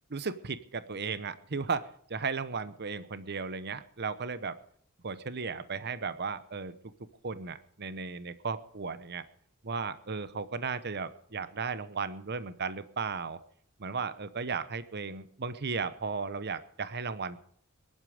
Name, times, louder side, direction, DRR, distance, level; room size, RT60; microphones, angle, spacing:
voice 1, 0.1-4.6 5.0-6.7 7.2-9.2 9.6-13.4 13.8-17.4, right 5 dB, 50° right, 14 dB, 1.0 m, -35 dB
21.0 x 11.5 x 5.1 m, 0.63 s
head